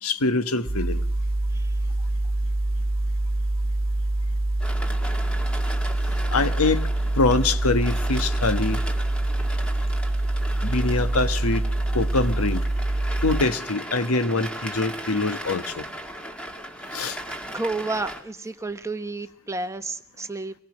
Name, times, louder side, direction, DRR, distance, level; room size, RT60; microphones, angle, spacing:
voice 1, 0.0-1.0 6.3-6.9 7.1-8.8 10.6-11.7 11.9-12.6 13.2-15.9 16.9-17.2, left 3 dB, 90° left, 1.3 m, -24 dB
sound 1, 0.7-13.4, right 1 dB, 60° right, 1.2 m, -25 dB
sound 2, 4.6-18.2, equal, 5° left, 2.3 m, -37 dB
voice 2, 17.3-20.5, right 3 dB, 15° right, 1.1 m, -31 dB
24.5 x 20.5 x 6.3 m
head